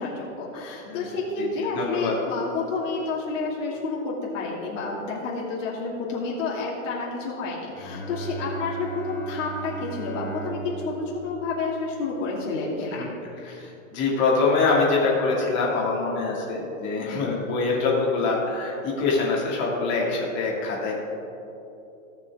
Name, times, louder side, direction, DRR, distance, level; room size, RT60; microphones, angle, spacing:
voice 1, 0.0-10.9 11.2-13.0, left 3 dB, 70° left, -5 dB, 2.5 m, -30 dB
voice 2, 1.4-2.1 12.9-13.1 13.4-20.9, left 3 dB, 30° left, -4 dB, 2.2 m, -24 dB
Bowed string instrument, 7.7-13.4, right 3 dB, 5° left, 1.5 m, -38 dB
17.5 x 6.1 x 3.5 m, 3.0 s
supercardioid pair, 160°, 40 cm